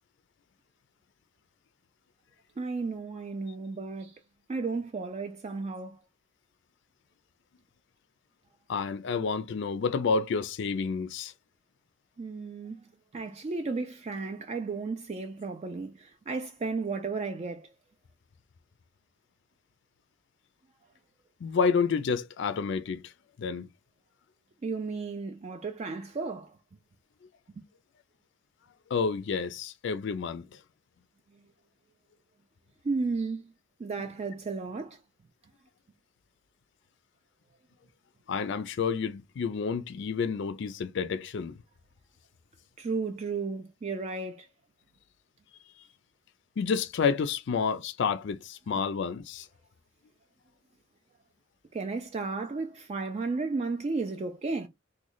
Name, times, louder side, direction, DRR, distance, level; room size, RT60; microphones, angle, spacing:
voice 1, 2.6-4.2 4.5-6.0 12.2-12.8 13.1-17.7 24.6-26.5 32.8-33.5 33.8-35.0 42.8-44.5 51.7-54.7, right 4 dB, 35° right, 0.3 m, -33 dB
voice 2, 8.7-11.3 21.4-23.1 23.4-23.7 28.9-30.6 34.0-34.1 38.3-41.6 45.8-45.9 46.6-49.5, left 5 dB, 60° left, 0.4 m, -29 dB
3.1 x 2.2 x 3.8 m
head